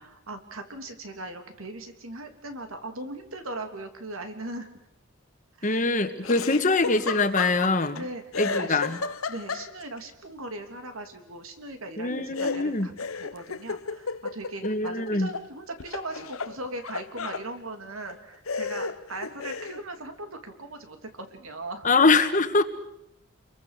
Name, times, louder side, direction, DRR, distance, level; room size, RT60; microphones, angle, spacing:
voice 1, 0.0-4.7 5.6-5.8 6.2-6.3 7.9-8.8 9.3-21.9, right 2 dB, 80° right, 6 dB, 3.1 m, -39 dB
voice 2, 5.6-8.0 8.4-9.0 12.0-12.9 14.6-15.3 21.8-22.6, left 3 dB, 35° left, 9 dB, 1.6 m, -23 dB
Laughter, 6.2-8.0 8.3-10.0 12.4-15.5 15.8-17.5 18.1-18.2 18.5-19.8, left 4 dB, 85° left, 1.1 m, -33 dB
28.5 x 23.0 x 6.7 m, 0.80 s
head